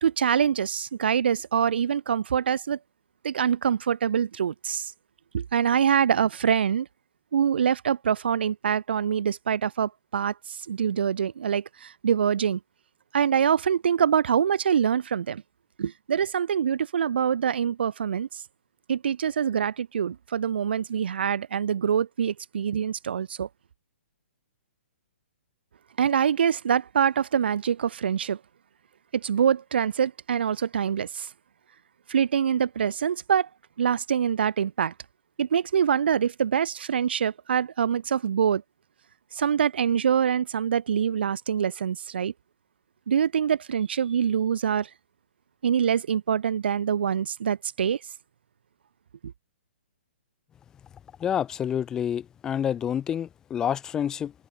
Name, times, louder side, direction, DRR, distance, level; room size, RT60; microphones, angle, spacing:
voice 1, 0.0-2.8 3.2-4.9 5.3-6.9 7.3-12.6 13.1-15.4 15.8-18.4 18.9-23.5 26.0-28.4 29.1-31.3 32.1-33.5 33.8-34.9 35.4-38.6 39.3-42.3 43.1-44.9 45.6-48.0, right 8 dB, 55° right, 2.7 m, -25 dB
voice 2, 51.2-54.3, left 9 dB, 10° left, 3.1 m, -28 dB
hypercardioid pair, 175°, 7 cm